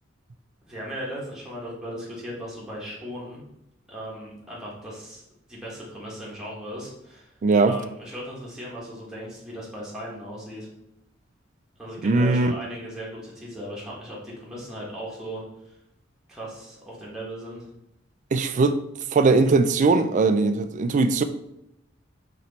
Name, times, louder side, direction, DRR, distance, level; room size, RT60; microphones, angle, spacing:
voice 1, 0.6-3.4 3.9-7.3 7.7-10.7 11.8-15.7 16.3-17.7, equal, 5° right, 1.2 m, -37 dB
voice 2, 7.4-7.8 12.0-12.5 18.3-18.8 19.1-21.2, right 3 dB, 40° right, 0.3 m, -20 dB
4.3 x 3.1 x 4.0 m
head